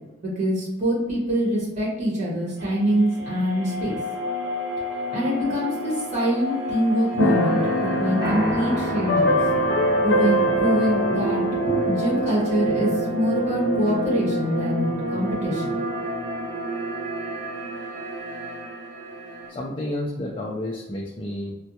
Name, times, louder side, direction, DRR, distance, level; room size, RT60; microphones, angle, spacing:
voice 1, 0.2-3.9 5.1-9.4 10.0-15.8, equal, 40° right, -6 dB, 1.3 m, -24 dB
sound 1, 2.6-19.5, right 1 dB, 55° right, 1.0 m, -29 dB
Keyboard (musical), 7.2-14.7, equal, 80° left, 0.6 m, -25 dB
Piano, 8.2-16.5, left 1 dB, 20° right, 1.1 m, -36 dB
voice 2, 19.5-21.5, left 1 dB, 30° left, -2 dB, 0.4 m, -30 dB
3.3 x 2.2 x 2.8 m, 1.0 s
head